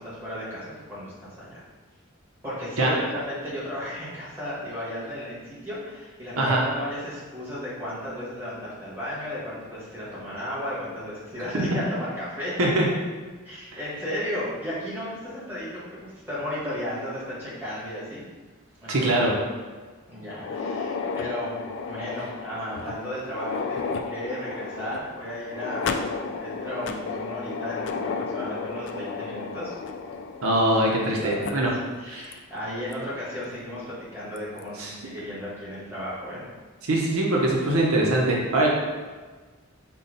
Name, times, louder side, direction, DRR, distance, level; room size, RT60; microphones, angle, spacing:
voice 1, 0.0-1.6 2.4-12.7 13.4-18.2 18.8-19.3 20.1-21.5 21.9-29.7 30.9-31.6 32.0-36.4, equal, 10° right, -10 dB, 1.5 m, -34 dB
voice 2, 18.9-19.3 30.4-31.7 32.1-32.3 34.8-34.9 36.8-38.7, right 1 dB, 85° right, -2 dB, 0.8 m, -22 dB
sound 1, 20.3-31.1 31.4-31.5 32.3-32.4 32.9-33.0 34.4-34.6, left 5 dB, 55° left, 0.3 m, -33 dB
5.5 x 2.2 x 3.9 m, 1.4 s
head